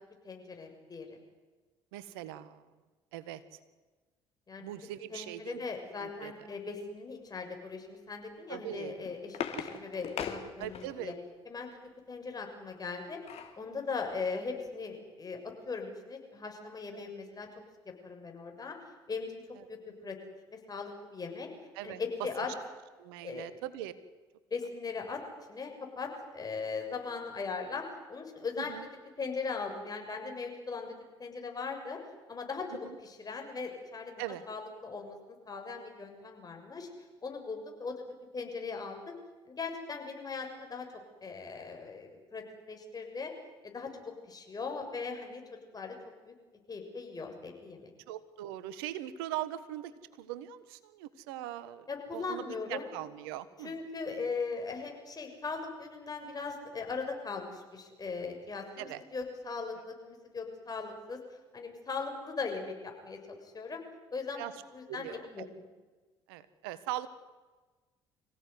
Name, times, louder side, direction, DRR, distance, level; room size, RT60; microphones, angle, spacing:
voice 1, 0.2-1.2 4.5-4.7 5.1-11.1 11.4-11.8 12.1-13.2 13.6-15.4 15.7-17.5 18.0-18.7 19.1-19.3 19.7-19.8 20.0-20.1 20.7-21.5 21.8-22.5 23.2-23.5 24.5-25.2 25.5-28.7 29.2-32.0 32.3-34.1 34.5-35.2 35.4-36.9 37.2-38.1 38.3-39.0 39.5-40.9 41.2-43.3 43.6-45.4 45.7-46.0 46.3-46.4 46.7-47.9 51.9-52.9 53.6-61.2 61.5-63.8 64.1-64.4 64.7-65.1 65.3-65.7, left 4 dB, 30° left, 3 dB, 6.9 m, -39 dB
voice 2, 1.9-2.6 3.1-3.4 4.6-5.6 6.0-6.3 8.5-8.9 10.6-11.1 16.9-17.1 19.6-19.7 21.7-22.0 23.0-23.9 28.6-28.9 32.8-33.0 34.2-34.4 48.1-49.9 50.2-53.7 58.8-59.0 64.4-64.5 64.9-65.5 66.3-67.1, right 13 dB, 80° right, 14 dB, 1.4 m, -41 dB
sound 1, 8.7-11.2 12.7-13.6 14.1-14.2 14.5-14.7, left 7 dB, 55° left, 3.1 m, -40 dB
26.0 x 16.5 x 9.7 m, 1.3 s
hypercardioid pair, 60°, 12 cm